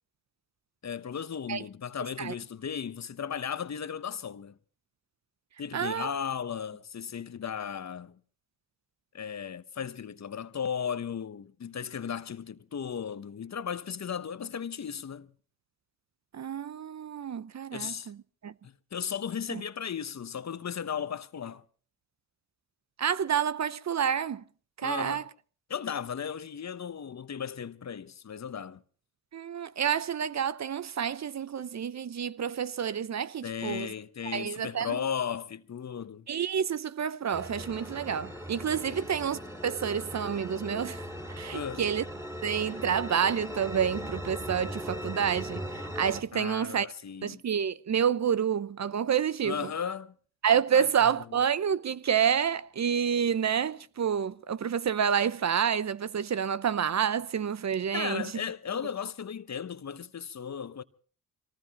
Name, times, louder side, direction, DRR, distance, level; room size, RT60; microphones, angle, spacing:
voice 1, 0.8-4.6 5.6-8.2 9.1-15.3 17.7-18.1 18.6-21.6 24.8-25.2 25.7-28.8 33.4-36.3 38.9-39.1 41.5-41.9 46.3-47.4 49.4-50.1 50.7-51.2 57.9-60.8, left 7 dB, 45° left, 1.0 m, -36 dB
voice 2, 5.7-6.1 16.3-18.2 18.4-18.5 19.5-19.6 23.0-24.4 24.8-25.2 29.3-33.9 34.3-35.0 36.3-41.0 41.3-42.0 42.4-46.9 47.2-49.5 50.4-58.2, right 8 dB, 45° right, 0.7 m, -29 dB
sound 1, 37.3-46.2, equal, 5° right, 3.8 m, -39 dB
25.0 x 19.0 x 3.0 m
supercardioid pair, 50°, 39 cm